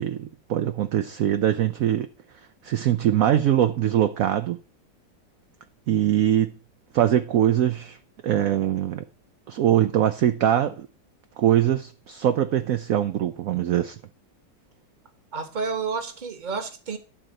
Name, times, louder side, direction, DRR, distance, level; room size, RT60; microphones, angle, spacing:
voice 1, 0.0-2.1 2.6-4.6 5.9-6.5 6.9-8.0 8.2-9.1 9.5-10.9 11.4-14.0, right 11 dB, 70° right, 0.8 m, -22 dB
voice 2, 15.3-17.0, right 5 dB, 30° right, 1.0 m, -30 dB
12.0 x 4.0 x 7.6 m
omnidirectional pair, 2.0 m